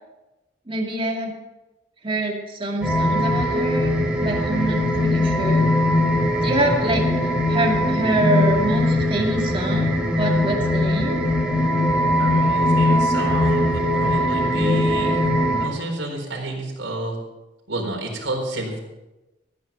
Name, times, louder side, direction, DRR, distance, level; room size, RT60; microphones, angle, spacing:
voice 1, 0.7-1.4 2.0-5.7 6.4-7.1 7.5-11.2, right 1 dB, 30° right, 0 dB, 2.4 m, -25 dB
sound 1, 2.8-15.7, left 1 dB, 5° right, 2.3 m, -20 dB
voice 2, 12.2-15.3 15.6-17.2 17.7-18.8, right 1 dB, 75° right, 0 dB, 4.2 m, -30 dB
15.0 x 9.3 x 5.9 m, 1.0 s
head